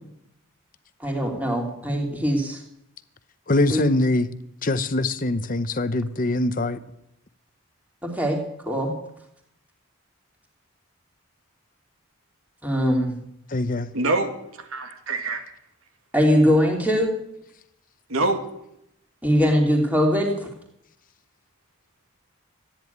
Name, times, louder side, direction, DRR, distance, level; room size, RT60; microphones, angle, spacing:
voice 1, 1.0-2.6 3.7-3.8 8.0-8.4 8.7-8.9 12.6-13.2 16.1-17.1 19.2-20.5, equal, 5° right, 2.9 m, -21 dB
voice 2, 3.5-4.3 4.6-6.8 13.5-13.9, left 2 dB, 40° left, 0.8 m, -23 dB
voice 3, 13.9-15.5 18.1-18.4, right 2 dB, 80° right, 2.3 m, -25 dB
14.0 x 10.0 x 9.2 m
head